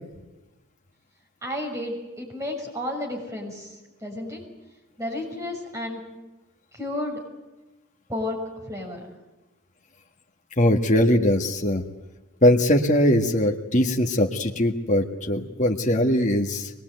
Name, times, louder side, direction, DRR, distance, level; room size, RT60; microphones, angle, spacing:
voice 1, 1.4-4.5 5.0-6.0 6.7-7.2 8.1-9.1, left 1 dB, 15° right, 0 dB, 6.3 m, -32 dB
voice 2, 10.6-11.8 12.4-16.7, left 1 dB, 35° left, 1 dB, 1.7 m, -21 dB
24.5 x 20.5 x 9.4 m, 1.1 s
head